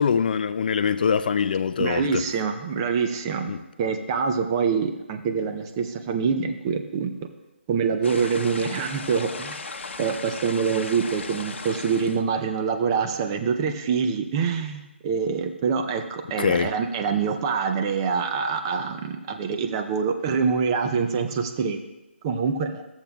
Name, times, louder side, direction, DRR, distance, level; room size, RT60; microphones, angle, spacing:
voice 1, 0.0-2.2 3.5-3.6 16.4-16.7, left 6 dB, 45° left, 0.3 m, -23 dB
voice 2, 1.8-3.5 3.8-7.1 7.7-9.6 10.0-21.8 22.2-22.8, right 6 dB, 20° right, 0.5 m, -25 dB
sound 1, 8.0-12.2, left 4 dB, 65° left, 0.8 m, -36 dB
13.5 x 7.2 x 2.3 m
figure-of-eight pair, 155°, 7 cm